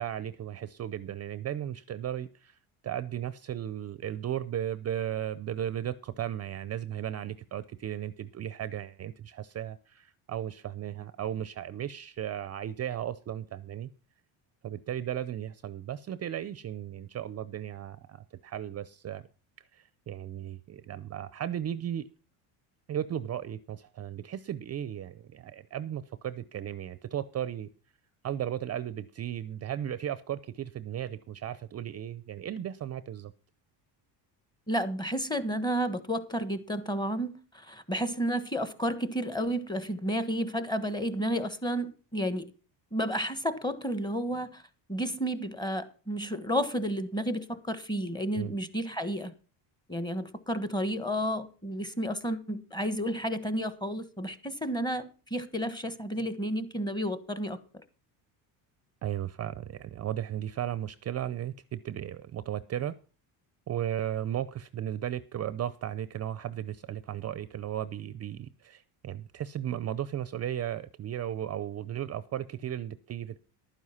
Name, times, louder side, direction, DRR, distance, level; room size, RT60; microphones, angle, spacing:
voice 1, 0.0-2.6 2.8-13.9 14.6-19.2 19.7-22.1 22.9-27.7 28.2-33.3 48.3-48.5 59.0-62.9 63.7-73.4, right 10 dB, 35° right, 0.6 m, -35 dB
voice 2, 34.7-42.5 42.9-44.6 44.9-49.3 49.9-57.6, equal, 10° left, 1.3 m, -31 dB
12.0 x 9.6 x 5.7 m
cardioid pair, 120°, 45 cm